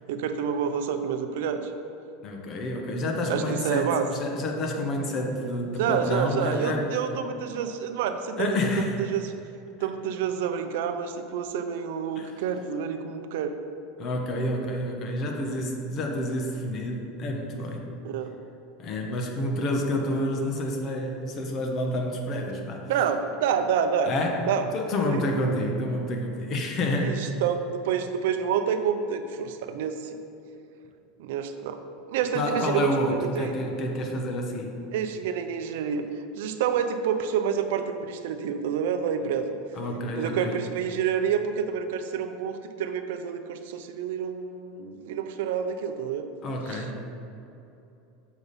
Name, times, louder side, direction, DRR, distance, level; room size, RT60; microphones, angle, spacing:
voice 1, 0.1-1.7 3.3-4.1 5.8-8.6 9.1-9.3 9.8-13.5 18.0-18.3 22.9-24.1 24.5-24.7 25.0-25.2 27.0-30.0 31.2-31.8 32.1-33.5 34.9-36.0 36.4-39.5 40.2-46.2 46.7-46.9, right 7 dB, 75° right, 8 dB, 0.5 m, -28 dB
voice 2, 2.2-6.9 8.4-9.0 12.2-12.3 14.0-17.9 18.8-22.8 24.0-24.5 24.7-27.4 32.3-34.8 39.7-40.6 46.4-47.1, left 1 dB, 40° left, 2 dB, 1.0 m, -29 dB
7.1 x 5.2 x 4.1 m, 2.8 s
supercardioid pair, 140°, 0 cm